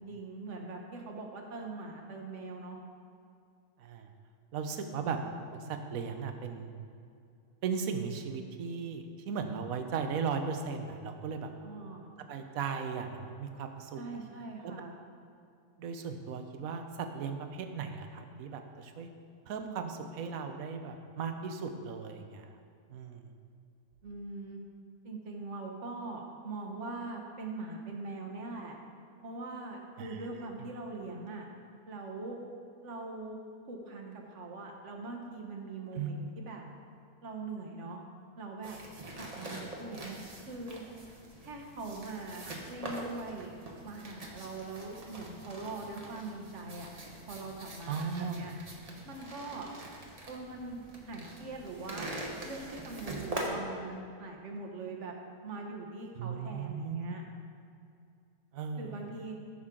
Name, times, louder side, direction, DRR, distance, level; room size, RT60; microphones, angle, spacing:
voice 1, 0.0-2.8 5.1-5.3 11.6-12.1 14.0-14.9 24.0-24.6 25.0-28.8 29.2-31.5 31.9-32.4 32.8-33.4 33.7-36.6 37.2-38.0 38.4-38.8 39.2-40.2 40.5-40.8 41.4-43.5 43.8-46.9 47.3-48.5 49.0-49.7 50.3-52.1 52.4-55.1 55.4-57.2 58.8-59.4, right 3 dB, 50° right, 1 dB, 1.4 m, -42 dB
voice 2, 4.5-5.2 5.5-6.7 7.6-11.5 12.3-14.0 14.6-14.7 15.8-19.1 19.5-22.6 22.9-23.3 30.0-30.2 35.9-36.2 47.9-48.5 56.1-57.1 58.5-59.1, right 6 dB, 65° right, 6 dB, 1.2 m, -37 dB
sound 1, 38.6-53.5, right 1 dB, 30° right, 1.0 m, -44 dB
14.0 x 6.2 x 3.7 m, 2.4 s
omnidirectional pair, 1.6 m